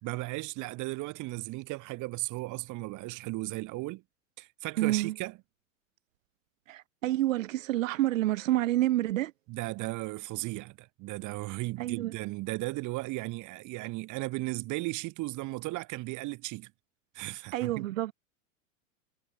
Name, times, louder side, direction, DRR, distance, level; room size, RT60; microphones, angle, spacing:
voice 1, 0.0-4.0 4.4-5.4 9.5-16.7 17.1-17.9, right 21 dB, 45° right, 3.5 m, -36 dB
voice 2, 4.8-5.1 6.7-9.3 11.8-12.1 17.5-18.1, right 15 dB, 70° right, 1.5 m, -28 dB
hypercardioid pair, 95°, 40 cm